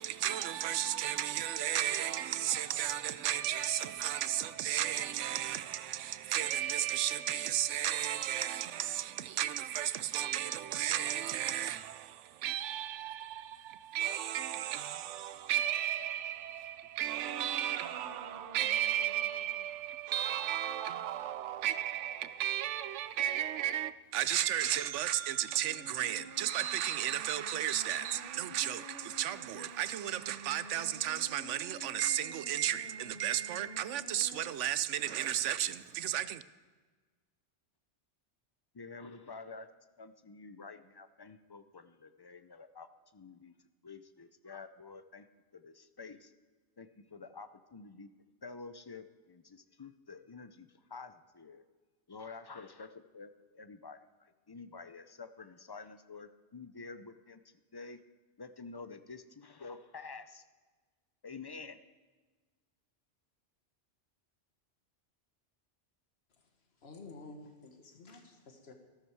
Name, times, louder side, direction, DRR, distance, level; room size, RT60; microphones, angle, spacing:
voice 1, 0.0-36.4, right 11 dB, 90° right, 0.9 m, -34 dB
sound 1, 17.2-19.7 25.4-34.5, equal, 50° right, 1.5 m, -51 dB
voice 2, 38.7-39.7 40.0-43.5 43.8-45.3 45.5-46.3 46.8-48.1 48.4-51.6 52.1-58.0 58.4-60.4 61.2-61.8, left 4 dB, 35° left, 0.4 m, -49 dB
voice 3, 66.8-68.7, left 3 dB, 60° left, 1.8 m, -51 dB
14.0 x 14.0 x 4.6 m
omnidirectional pair, 1.2 m